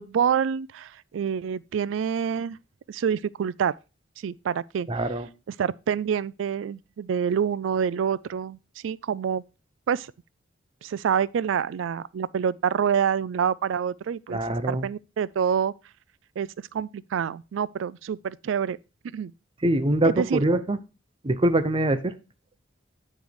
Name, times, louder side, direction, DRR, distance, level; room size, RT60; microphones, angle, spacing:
voice 1, 0.0-2.6 2.9-3.7 4.2-4.9 5.5-8.6 8.8-9.4 9.9-10.1 10.8-14.4 14.7-15.7 16.4-18.8 19.0-19.3 20.0-20.4, right 7 dB, 70° right, 0.3 m, -27 dB
voice 2, 4.9-5.3 14.3-14.9 19.6-20.8 21.2-22.1, right 1 dB, 25° right, 0.6 m, -23 dB
9.2 x 3.2 x 5.1 m
head